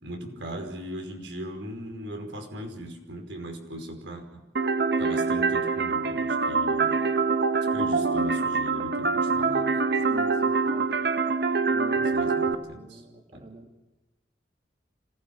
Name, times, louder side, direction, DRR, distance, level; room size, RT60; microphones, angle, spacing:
voice 1, 0.0-4.4 5.0-7.0 7.7-9.7 12.0-13.0 13.3-13.4, equal, 85° right, 3 dB, 5.2 m, -38 dB
sound 1, 4.6-12.6, right 4 dB, 60° right, 1.3 m, -25 dB
voice 2, 9.9-10.9 11.7-12.1 12.5-13.7, right 2 dB, 35° right, 2 dB, 2.3 m, -45 dB
26.5 x 17.0 x 8.7 m, 1.1 s
head